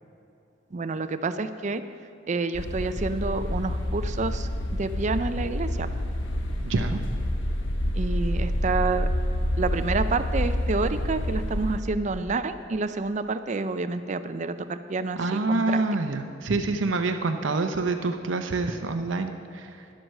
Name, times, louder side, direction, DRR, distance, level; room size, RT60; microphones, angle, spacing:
voice 1, 0.7-1.8 2.3-4.5 4.8-5.9 7.9-9.1 9.6-15.8, right 3 dB, 40° right, 11 dB, 0.5 m, -28 dB
sound 1, 2.5-11.8, equal, 85° left, 1.0 m, -28 dB
voice 2, 6.6-7.0 15.2-19.8, right 3 dB, 85° right, 6 dB, 0.7 m, -27 dB
11.5 x 7.9 x 6.5 m, 2.7 s
head